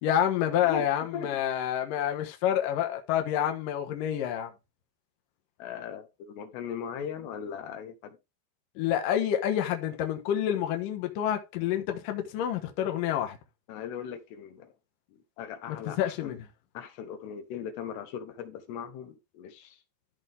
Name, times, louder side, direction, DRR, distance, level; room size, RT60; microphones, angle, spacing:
voice 1, 0.0-4.5 8.8-13.4 16.0-16.4, left 10 dB, 65° left, 2.6 m, -28 dB
voice 2, 5.6-8.2 13.7-14.7 15.1-16.3 16.7-19.8, left 7 dB, 80° left, 3.2 m, -39 dB
13.5 x 5.3 x 3.5 m
omnidirectional pair, 4.9 m